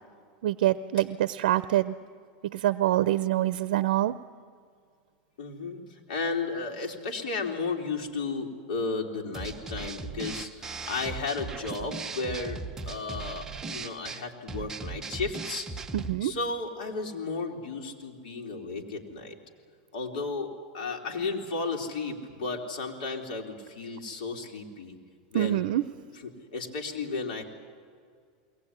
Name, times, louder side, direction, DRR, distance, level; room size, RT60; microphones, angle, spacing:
voice 1, 0.4-1.9 2.4-4.1 15.9-16.3 25.3-25.8, right 14 dB, 80° right, 15 dB, 0.6 m, -25 dB
voice 2, 5.4-15.7 16.2-19.4 19.9-25.0 25.3-25.6 26.2-27.4, left 3 dB, 80° left, 1 dB, 3.5 m, -34 dB
sound 1, 9.3-16.2, right 4 dB, 10° right, 0.7 m, -38 dB
22.0 x 18.5 x 9.8 m, 2.1 s
supercardioid pair, 160°, 4 cm